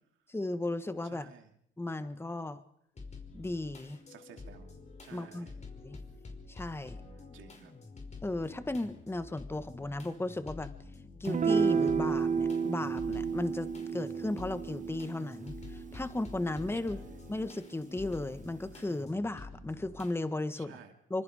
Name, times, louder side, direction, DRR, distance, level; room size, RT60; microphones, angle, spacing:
voice 1, 0.3-1.3 1.8-2.6 3.3-4.0 5.1-5.5 5.8-6.0 6.5-7.0 8.2-10.7 11.2-17.0 17.3-20.8 21.1-21.2, left 2 dB, 10° left, 11 dB, 1.4 m, -35 dB
voice 2, 1.0-1.5 4.1-4.7 5.0-5.6 7.0-7.7 16.7-17.1 20.5-20.9, right 9 dB, 80° right, 5 dB, 2.7 m, -54 dB
sound 1, 3.0-20.2, left 3 dB, 35° left, 5.3 m, -48 dB
sound 2, 11.3-17.8, right 6 dB, 40° right, 1.2 m, -32 dB
25.5 x 25.5 x 5.0 m, 0.70 s
cardioid pair, 90°, 20 cm